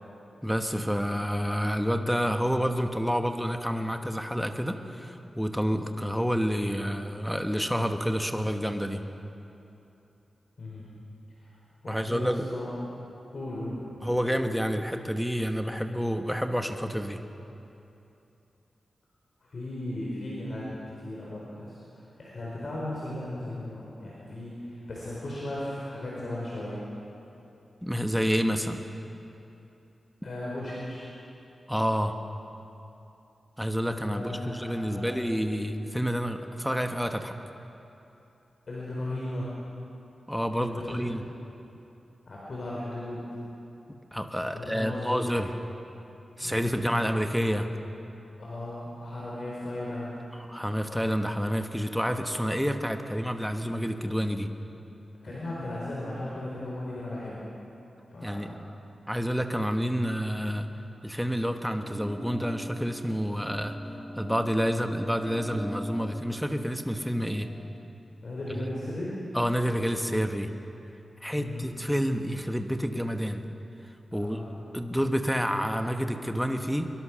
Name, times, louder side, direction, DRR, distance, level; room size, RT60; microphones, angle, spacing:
voice 1, 0.4-9.0 11.9-12.5 14.0-17.2 27.8-28.8 31.7-32.2 33.6-37.3 40.3-41.2 44.1-45.5 46.4-47.7 50.5-54.5 58.2-58.5 59.1-60.7 61.0-63.8 64.2-67.5 68.5-68.7 69.3-70.5 71.2-73.4 74.1-74.4 74.7-76.9, equal, ahead, 6 dB, 1.2 m, -29 dB
voice 2, 10.6-10.9 11.4-11.5 11.8-12.8 13.3-13.8 19.4-21.7 22.2-26.8 30.2-31.1 34.1-35.1 38.7-39.6 40.5-41.0 42.3-43.3 44.5-45.2 46.4-46.9 48.4-50.2 55.2-57.5 58.1-58.6 68.2-69.2 71.3-71.7 74.1-74.5, left 1 dB, 50° left, -5 dB, 4.5 m, -36 dB
sound 1, 61.8-67.6, equal, 85° left, 6.3 m, -41 dB
24.5 x 22.5 x 6.3 m, 2.9 s
wide cardioid pair, 155°, 0 cm